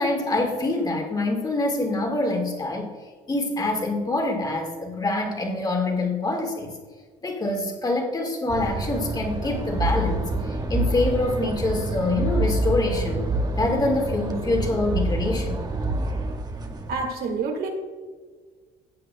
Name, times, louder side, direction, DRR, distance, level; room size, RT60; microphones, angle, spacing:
voice 1, 0.0-2.9 3.3-6.7 7.2-13.3 13.6-15.6, left 2 dB, 25° left, 2 dB, 2.0 m, -25 dB
sound 1, 8.5-17.0, right 2 dB, 25° right, 1.0 m, -27 dB
voice 2, 16.9-17.7, right 4 dB, 65° right, 2 dB, 1.9 m, -27 dB
16.0 x 7.5 x 2.3 m, 1.5 s
cardioid pair, 110°, 17 cm